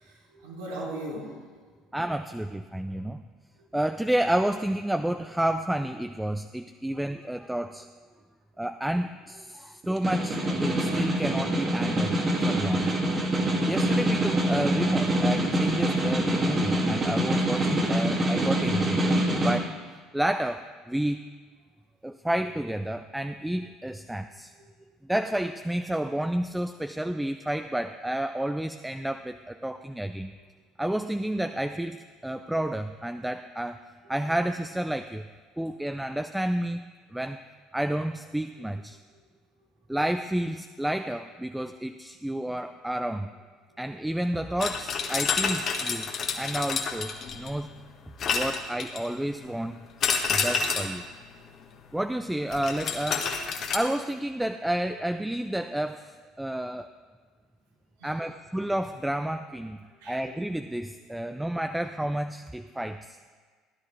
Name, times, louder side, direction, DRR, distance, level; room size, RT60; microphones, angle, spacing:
voice 1, 0.0-1.4 34.0-34.1 47.5-47.7 48.0-48.2 58.0-58.1 60.0-60.3 61.3-61.4, right 1 dB, 75° right, -3 dB, 2.9 m, -39 dB
voice 2, 1.9-3.2 3.7-7.9 8.6-12.2 12.5-12.9 13.6-19.1 19.4-19.7 20.1-21.2 22.0-24.5 25.1-30.3 30.8-33.8 34.1-35.2 35.6-36.8 37.1-37.4 37.7-39.0 39.9-43.3 43.8-46.1 46.4-47.7 48.3-49.8 50.3-51.0 51.9-53.3 53.7-56.9 58.0-59.8 60.1-63.3, right 1 dB, 5° right, 9 dB, 0.4 m, -30 dB
Snare drum, 9.8-19.6, right 1 dB, 30° right, 2.3 m, -25 dB
sound 1, 44.6-47.6 48.2-49.2 50.0-51.0 52.5-53.8, left 5 dB, 50° left, 1.4 m, -28 dB
16.0 x 10.5 x 3.3 m, 1.5 s
hypercardioid pair, 65°, 0 cm